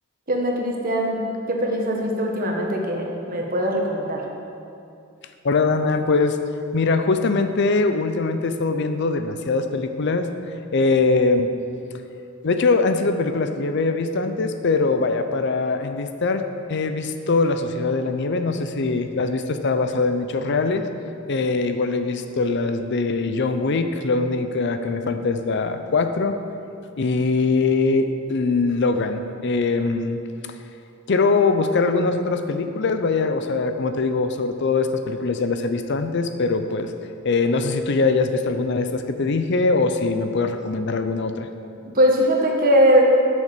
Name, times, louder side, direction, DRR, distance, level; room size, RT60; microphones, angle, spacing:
voice 1, 0.3-1.2 1.5-4.2 41.8-43.0, equal, 45° right, 0 dB, 1.4 m, -20 dB
voice 2, 5.4-6.4 6.7-10.3 10.7-11.5 12.4-16.4 16.7-20.9 21.3-26.4 27.0-30.2 31.1-36.9 37.2-41.5, left 3 dB, 60° left, 8 dB, 0.5 m, -22 dB
8.6 x 6.5 x 6.8 m, 2.6 s
head